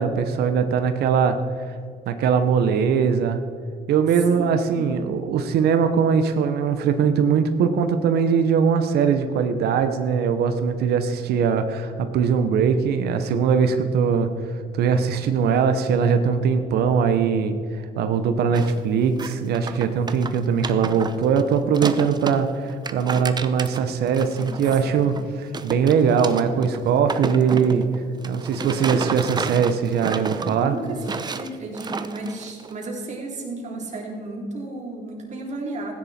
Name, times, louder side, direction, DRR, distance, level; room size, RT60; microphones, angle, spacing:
voice 1, 0.0-1.4 2.1-3.4 3.9-14.3 14.7-17.5 18.0-27.8 28.2-30.7, right 6 dB, 70° right, 8 dB, 0.9 m, -21 dB
voice 2, 4.3-4.8 24.2-24.6 24.9-25.1 30.6-35.9, right 2 dB, 45° right, -1 dB, 3.5 m, -33 dB
sound 1, 18.5-18.8 19.1-22.4 22.7-25.2 25.5-32.8, right 5 dB, 25° right, 0.8 m, -31 dB
15.5 x 10.0 x 4.4 m, 2.3 s
cardioid pair, 110°, 17 cm